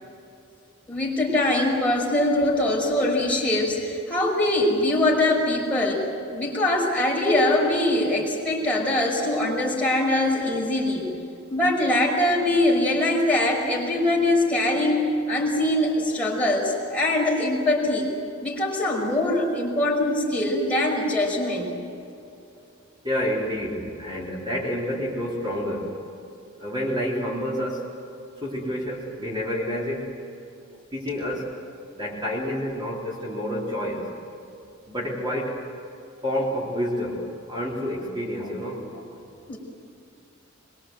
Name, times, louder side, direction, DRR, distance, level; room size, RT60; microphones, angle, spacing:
voice 1, 0.9-6.1 6.3-11.1 11.5-18.1 18.4-21.7 39.5-39.6, left 1 dB, 5° left, -4 dB, 5.7 m, -22 dB
voice 2, 23.0-25.9 26.6-27.8 28.4-30.1 30.9-31.5 31.9-34.1 34.9-35.6 36.2-37.2 37.5-39.2, equal, 25° right, -4 dB, 3.9 m, -29 dB
25.0 x 23.5 x 8.0 m, 2.7 s
head